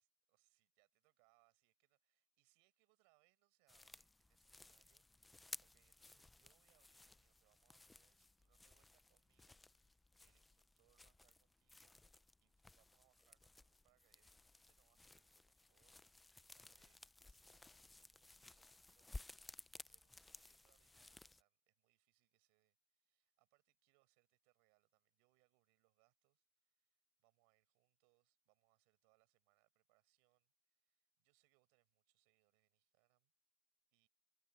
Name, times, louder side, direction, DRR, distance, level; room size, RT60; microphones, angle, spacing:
voice 1, 0.0-12.0 12.4-19.4 19.7-33.3 33.9-34.1, right 37 dB, 55° right, 7.6 m, -81 dB
Fotsteg i gräs, 3.7-21.4, left 2 dB, 5° left, 0.5 m, -59 dB
supercardioid pair, 135°, 0 cm